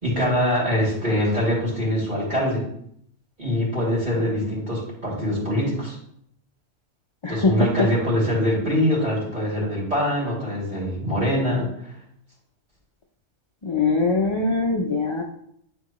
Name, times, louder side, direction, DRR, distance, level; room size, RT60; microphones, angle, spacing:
voice 1, 0.0-2.6 3.4-6.0 7.3-11.6, equal, 35° right, -6 dB, 3.0 m, -23 dB
voice 2, 7.2-7.9 13.6-15.2, left 3 dB, 40° left, 1 dB, 0.4 m, -22 dB
9.9 x 4.4 x 3.1 m, 0.70 s
omnidirectional pair, 1.4 m